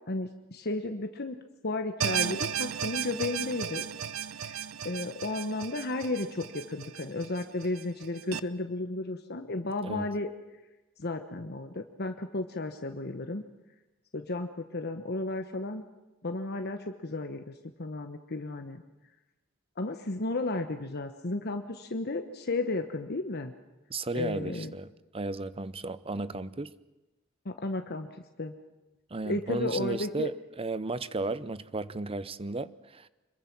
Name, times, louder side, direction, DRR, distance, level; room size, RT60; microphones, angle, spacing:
voice 1, 0.1-1.4 1.6-3.8 4.4-4.6 4.8-10.3 11.0-13.4 14.1-15.8 16.2-17.5 17.8-18.8 19.8-23.5 24.1-24.7 27.4-28.1 28.4-28.5 29.2-30.3, left 2 dB, 50° left, 1.1 m, -33 dB
sound 1, 2.0-8.4, right 9 dB, 85° right, 0.8 m, -35 dB
voice 2, 23.9-26.7 29.1-30.3 30.6-33.1, right 2 dB, 25° right, 0.7 m, -34 dB
26.0 x 22.5 x 6.1 m
head